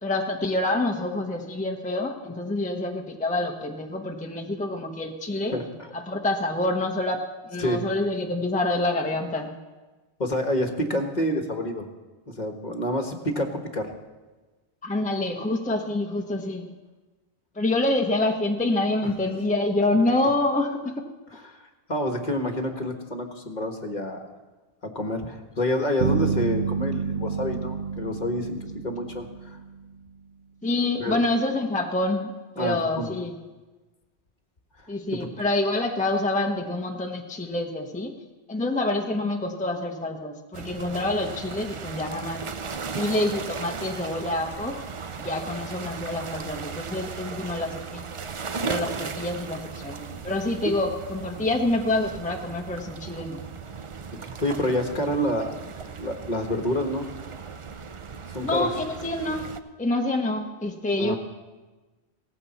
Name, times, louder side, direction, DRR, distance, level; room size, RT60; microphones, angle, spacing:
voice 1, 0.0-5.5 5.9-9.5 11.3-11.5 14.8-16.7 17.5-21.0 30.6-33.4 34.9-38.1 38.5-42.4 42.9-44.8 45.2-48.0 48.6-53.5 58.4-59.5 59.8-61.2, left 2 dB, 10° left, 2 dB, 0.9 m, -27 dB
voice 2, 5.5-5.9 7.6-7.9 10.2-11.9 12.3-13.9 21.5-24.2 24.8-29.6 31.0-31.2 32.6-33.1 35.1-35.3 54.2-57.1 58.3-58.7 61.0-61.2, left 1 dB, 45° left, 4 dB, 1.5 m, -28 dB
sound 1, 26.0-30.0, right 5 dB, 55° right, 0.9 m, -29 dB
sound 2, 40.5-59.6, right 5 dB, 40° right, 0.5 m, -37 dB
17.5 x 15.0 x 4.2 m, 1.2 s
omnidirectional pair, 1.1 m